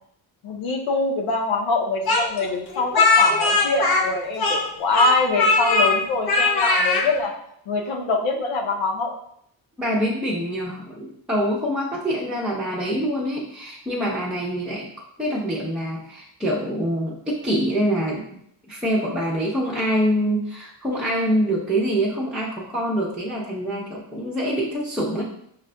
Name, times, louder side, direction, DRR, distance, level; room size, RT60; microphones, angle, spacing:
voice 1, 0.4-7.3 7.7-9.1, left 3 dB, 80° left, 1 dB, 0.8 m, -24 dB
Speech, 2.1-4.7 4.9-5.9 6.3-7.1, left 3 dB, 50° left, 0.9 m, -19 dB
voice 2, 9.8-14.9 15.2-18.2 18.7-25.2, equal, ahead, -7 dB, 0.8 m, -25 dB
5.9 x 2.4 x 2.2 m, 0.71 s
cardioid pair, 65°, 46 cm